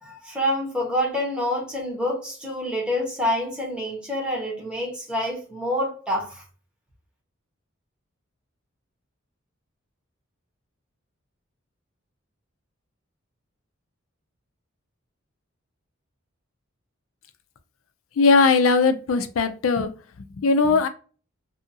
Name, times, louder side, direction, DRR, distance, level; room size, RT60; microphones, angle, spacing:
voice 1, 0.0-6.4, left 1 dB, 5° right, 1.0 m, -27 dB
voice 2, 18.2-19.9 20.2-20.9, left 4 dB, 80° left, 0.4 m, -19 dB
2.7 x 2.5 x 2.6 m
head